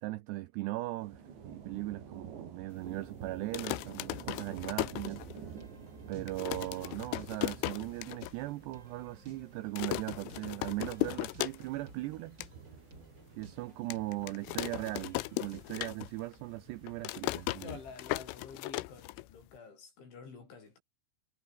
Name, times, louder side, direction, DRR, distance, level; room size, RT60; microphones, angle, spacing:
voice 1, 0.0-5.2 6.1-12.4 13.4-17.8, right 18 dB, 85° right, 2.4 m, -39 dB
sound 1, 1.0-18.6, right 6 dB, 60° right, 6.8 m, -51 dB
sound 2, 3.4-5.7 6.0-6.1 6.3-8.3 8.7-8.8 9.0-9.4 9.8-11.9 12.2-12.5 13.0-13.1 13.9-16.3 16.6-19.6, left 20 dB, 90° left, 3.4 m, -37 dB
sound 3, 4.6-16.0, right 2 dB, 20° right, 6.1 m, -57 dB
voice 2, 17.6-20.8, left 5 dB, 65° left, 9.8 m, -49 dB
omnidirectional pair, 5.8 m